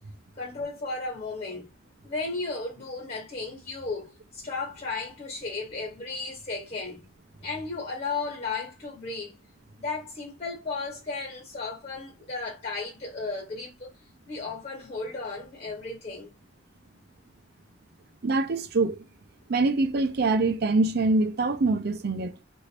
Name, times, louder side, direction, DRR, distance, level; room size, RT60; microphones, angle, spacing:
voice 1, 0.4-1.7 2.0-7.0 7.4-9.4 9.8-13.9 14.2-16.4, left 3 dB, 35° left, 1.5 m, -34 dB
voice 2, 18.2-19.0 19.5-22.3, right 3 dB, 60° right, 0.5 m, -24 dB
2.6 x 2.4 x 3.2 m
head